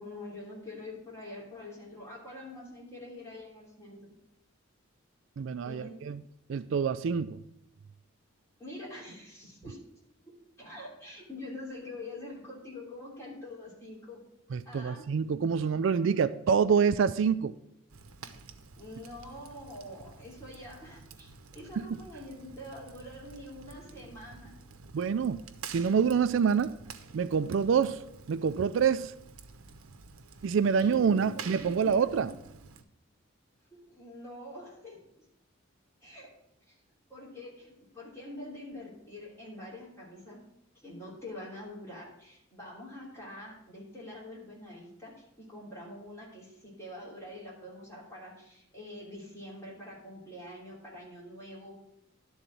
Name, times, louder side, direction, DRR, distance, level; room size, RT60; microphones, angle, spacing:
voice 1, 0.0-4.0 5.6-6.0 8.6-9.8 10.6-14.2 14.6-15.1 18.7-24.5 30.7-32.3 33.7-35.0 36.0-36.3 36.7-36.8 37.1-40.4 40.8-51.8, left 1 dB, 15° left, -6 dB, 3.0 m, -45 dB
voice 2, 5.4-6.2 6.5-7.4 14.5-17.6 24.9-25.4 25.7-26.7 27.1-28.0 28.3-29.1 30.4-32.3, right 6 dB, 60° right, 13 dB, 0.3 m, -26 dB
Fire, 17.9-32.8, right 5 dB, 85° right, 0.8 m, -49 dB
11.0 x 4.0 x 7.4 m, 0.80 s
head